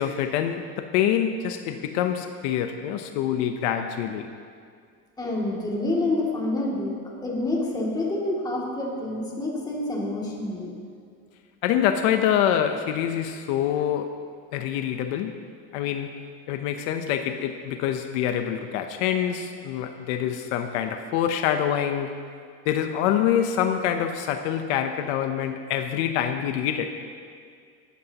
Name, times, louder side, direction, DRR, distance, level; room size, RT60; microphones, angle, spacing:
voice 1, 0.0-4.3 11.6-14.2 14.5-15.5 15.7-16.1 16.5-22.2 22.7-26.9, left 9 dB, 80° left, 7 dB, 0.9 m, -25 dB
voice 2, 5.2-10.7, left 2 dB, 10° left, -4 dB, 2.5 m, -28 dB
17.0 x 14.0 x 3.0 m, 2.2 s
cardioid pair, 155°, 33 cm